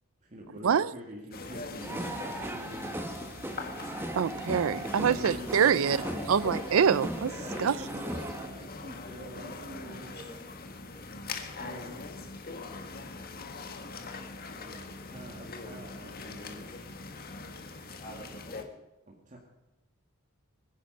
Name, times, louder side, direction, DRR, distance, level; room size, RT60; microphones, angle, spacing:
voice 1, 0.2-3.1 5.0-6.4 7.4-10.2 11.6-12.0 14.6-16.8 19.1-19.4, right 1 dB, 35° right, 2.1 m, -45 dB
sound 1, 1.3-18.6, left 3 dB, 45° left, 1.7 m, -42 dB
sound 2, 1.8-8.5, right 1 dB, 10° right, 1.4 m, -38 dB
voice 2, 4.1-6.0 6.3-7.3 7.6-7.8, right 7 dB, 70° right, 0.4 m, -25 dB
voice 3, 9.1-11.2 11.6-12.8 13.2-13.6 18.0-18.7, equal, 30° left, 4.6 m, -52 dB
22.5 x 10.5 x 5.4 m
head